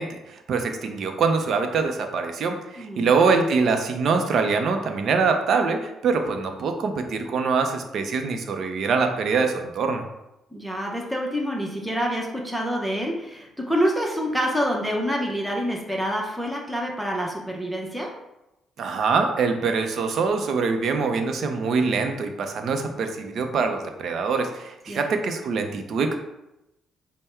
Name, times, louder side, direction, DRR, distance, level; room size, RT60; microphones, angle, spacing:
voice 1, 0.0-10.0 18.8-26.2, right 4 dB, 65° right, 5 dB, 0.6 m, -24 dB
voice 2, 2.8-3.1 10.5-18.1 24.9-25.1, equal, ahead, -2 dB, 0.8 m, -27 dB
5.4 x 2.2 x 4.4 m, 0.92 s
cardioid pair, 90°, 0 cm